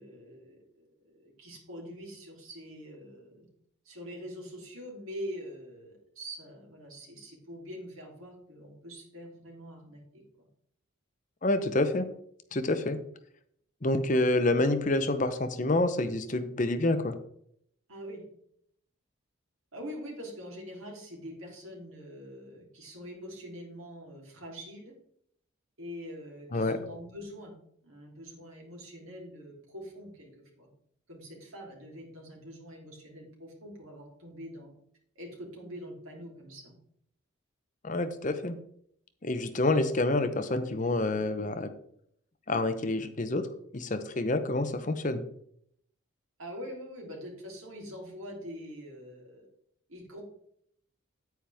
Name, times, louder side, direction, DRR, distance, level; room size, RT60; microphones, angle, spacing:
voice 1, 0.0-3.5 3.8-10.5 17.9-18.2 19.7-24.9 25.8-27.5 27.8-30.7 31.1-34.7 35.1-36.8 46.4-49.5 49.9-50.2, equal, 80° right, -1 dB, 3.4 m, -44 dB
voice 2, 11.4-12.1 12.5-13.0 13.8-17.2 26.5-26.8 37.8-38.5 39.2-41.7 42.5-43.4 43.7-45.2, left 2 dB, 35° left, 9 dB, 0.7 m, -27 dB
9.2 x 9.1 x 3.5 m, 0.69 s
head